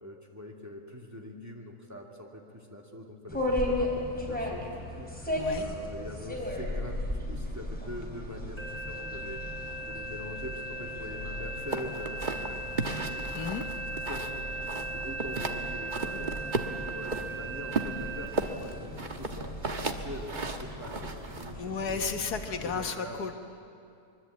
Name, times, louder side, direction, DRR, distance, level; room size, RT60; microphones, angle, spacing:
voice 1, 0.0-9.4 9.8-13.3 13.9-14.4 14.8-19.5 19.9-22.1 22.6-23.3, left 1 dB, 10° right, 0 dB, 2.4 m, -43 dB
sound 1, 3.3-22.8, left 1 dB, 5° left, 4.1 m, -37 dB
sound 2, 8.6-18.3, right 2 dB, 25° left, 3.0 m, -38 dB
sound 3, 11.7-14.4 14.7-15.6 15.9-17.3 17.7-21.5, right 3 dB, 30° right, 1.3 m, -34 dB
voice 2, 21.6-23.3, left 5 dB, 75° left, 6 dB, 1.8 m, -33 dB
25.0 x 22.0 x 8.6 m, 2.5 s
omnidirectional pair, 1.7 m